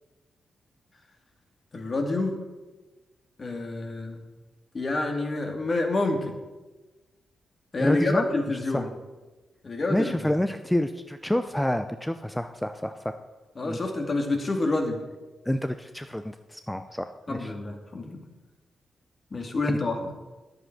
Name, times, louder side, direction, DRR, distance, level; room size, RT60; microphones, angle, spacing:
voice 1, 1.7-2.4 3.4-4.2 4.7-6.4 7.7-8.9 9.6-10.3 13.6-15.0 17.3-18.2 19.3-20.1, left 2 dB, 45° left, 3 dB, 2.2 m, -28 dB
voice 2, 7.8-8.3 8.7-8.9 9.9-13.1 13.6-13.8 15.5-17.5 19.6-19.7, left 1 dB, 10° left, 9 dB, 0.6 m, -28 dB
10.0 x 8.0 x 5.9 m, 1.2 s
supercardioid pair, 45°, 0 cm